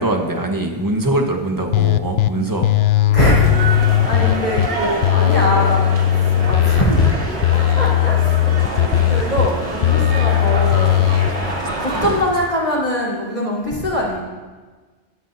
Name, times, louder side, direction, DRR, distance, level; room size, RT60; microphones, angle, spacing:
voice 1, 0.0-2.7 11.9-12.2, right 1 dB, 20° right, 2 dB, 1.4 m, -22 dB
sound 1, 1.7-2.3 2.6-4.7 5.0-7.1 7.4-9.5 9.8-11.3, left 12 dB, 75° left, 0.8 m, -16 dB
voice 2, 2.3-2.7 3.1-7.0 7.8-11.0 11.8-14.2, left 1 dB, 40° left, -4 dB, 4.3 m, -22 dB
sound 2, 3.2-12.2, right 1 dB, 85° right, 2.1 m, -26 dB
21.5 x 12.0 x 2.8 m, 1.4 s
omnidirectional pair, 1.1 m